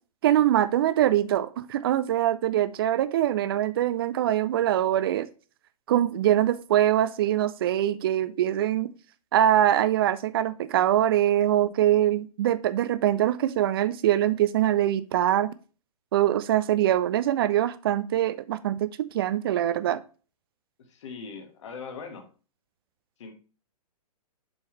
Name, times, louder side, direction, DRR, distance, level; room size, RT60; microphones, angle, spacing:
voice 1, 0.2-5.3 5.9-8.9 9.3-15.5 16.1-20.0, right 12 dB, 35° right, 0.5 m, -23 dB
voice 2, 20.8-22.3 23.2-23.3, left 5 dB, 50° left, 1.5 m, -40 dB
7.1 x 4.7 x 3.0 m
figure-of-eight pair, 115°, 20 cm